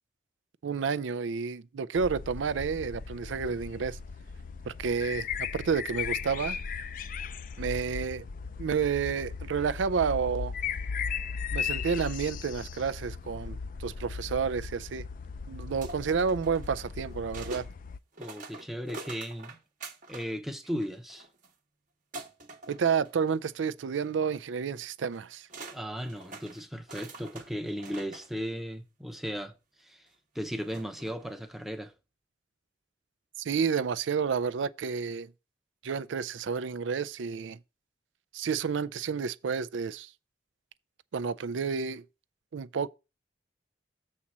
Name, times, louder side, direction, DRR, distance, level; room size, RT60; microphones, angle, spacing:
voice 1, 0.6-4.0 4.6-6.6 7.6-8.3 8.6-10.5 11.5-15.0 15.5-17.7 22.7-25.5 33.4-35.3 35.8-37.6 38.3-40.1 41.1-42.0 42.5-42.9, right 6 dB, 85° right, 0.4 m, -30 dB
sound 1, 2.0-18.0, left 6 dB, 45° left, 0.4 m, -37 dB
sound 2, 15.8-17.7 18.1-20.3 20.6-21.5 22.1-23.5 23.9-24.1 25.1-25.2 25.5-28.3 29.1-29.2 30.6-31.3, right 3 dB, 45° right, 1.0 m, -46 dB
voice 2, 18.2-19.6 20.1-21.3 25.7-30.1 30.3-31.9, equal, ahead, 0.7 m, -36 dB
7.3 x 4.3 x 6.1 m
head